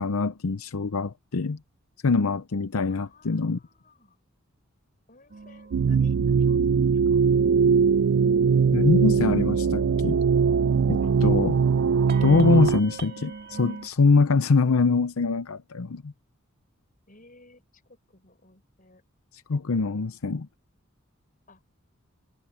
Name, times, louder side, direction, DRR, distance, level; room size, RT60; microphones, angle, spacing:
voice 1, 0.0-1.6 2.0-3.6 8.7-10.2 10.9-11.6 12.2-16.1 19.5-20.5, left 4 dB, 85° left, 0.7 m, -23 dB
voice 2, 2.8-4.2 5.1-7.2 17.1-19.0 21.5-21.6, left 2 dB, 40° left, 6.8 m, -56 dB
sound 1, 5.3-13.9, right 4 dB, 50° right, 2.2 m, -43 dB
sound 2, 5.7-12.8, right 6 dB, 65° right, 0.3 m, -21 dB
head